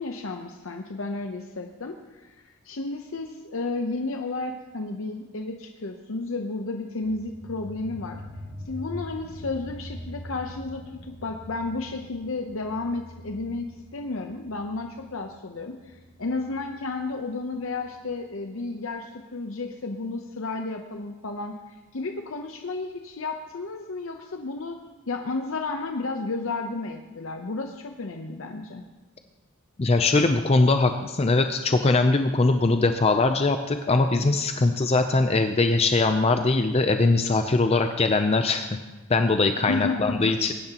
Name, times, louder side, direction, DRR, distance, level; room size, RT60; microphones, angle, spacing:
voice 1, 0.0-8.2 8.7-24.8 25.1-28.8 39.7-40.4, left 3 dB, 70° left, 4 dB, 0.8 m, -32 dB
sound 1, 7.0-18.1, equal, 55° right, 5.0 m, -43 dB
voice 2, 29.8-38.7 39.1-40.5, left 3 dB, 30° left, 7 dB, 0.5 m, -21 dB
21.0 x 10.5 x 2.9 m, 1.2 s
head